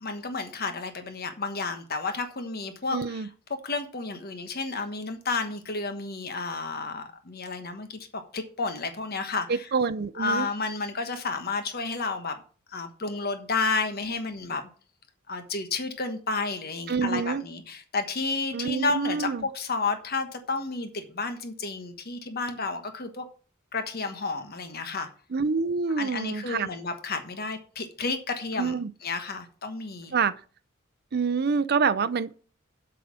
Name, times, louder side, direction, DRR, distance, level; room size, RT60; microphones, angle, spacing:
voice 1, 0.0-9.7 10.2-12.4 12.7-14.6 15.3-23.2 23.7-25.1 26.0-28.7 29.0-30.1, left 3 dB, 50° left, 1.3 m, -31 dB
voice 2, 2.9-3.3 9.5-10.5 16.9-17.4 18.5-19.4 25.3-26.7 28.6-28.9 30.1-30.4 31.1-32.3, right 5 dB, 50° right, 0.5 m, -26 dB
8.3 x 5.6 x 7.5 m
head